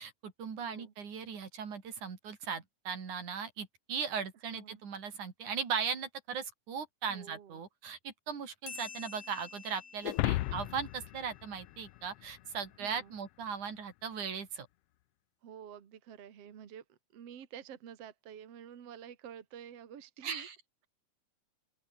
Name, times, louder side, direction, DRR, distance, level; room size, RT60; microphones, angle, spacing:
voice 1, 0.0-14.7 20.2-20.6, right 6 dB, 85° right, 4.9 m, -38 dB
voice 2, 0.6-0.9 4.5-4.8 7.1-7.6 12.8-13.1 15.4-20.5, right 9 dB, 60° right, 2.8 m, -49 dB
sound 1, 8.7-11.7, left 5 dB, 65° left, 4.9 m, -50 dB
sound 2, 10.0-12.6, left 17 dB, 80° left, 1.4 m, -35 dB
open air
omnidirectional pair, 3.4 m